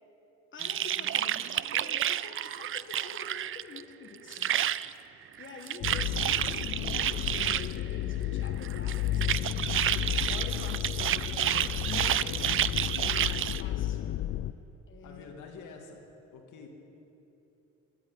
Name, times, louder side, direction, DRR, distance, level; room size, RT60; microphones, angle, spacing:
voice 1, 0.5-4.5 5.4-12.6 13.0-14.0 14.9-15.3, left 4 dB, 40° left, 3 dB, 1.4 m, -46 dB
sound 1, 0.6-3.8 4.1-4.9 5.4-7.7 8.6-13.6, right 11 dB, 45° right, 0.4 m, -30 dB
sound 2, 5.8-14.5, left 12 dB, 60° left, 0.5 m, -33 dB
voice 2, 13.7-14.2 15.0-16.0 16.3-16.7, left 5 dB, 80° left, 2 dB, 2.1 m, -48 dB
13.0 x 8.6 x 9.8 m, 2.9 s
cardioid pair, 90°, 30 cm